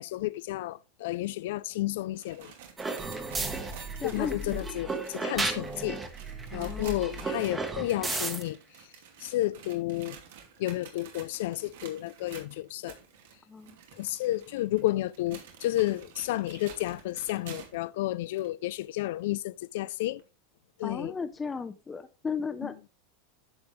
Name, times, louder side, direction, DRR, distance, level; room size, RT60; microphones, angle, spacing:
voice 1, 0.0-2.5 4.0-6.0 6.5-8.6 9.2-10.2 10.6-13.0 14.0-20.2 20.8-21.1, left 16 dB, 65° left, 0.3 m, -31 dB
sound 1, 2.0-17.9 18.4-18.5 19.2-19.3 20.2-20.3, right 8 dB, 75° right, 2.6 m, -50 dB
sound 2, 2.8-8.4, right 3 dB, 10° right, 1.2 m, -34 dB
voice 2, 4.0-4.7 6.5-7.0 13.5-13.8 20.8-22.8, left 5 dB, 10° left, 0.7 m, -35 dB
10.5 x 6.9 x 3.2 m
supercardioid pair, 160°, 0 cm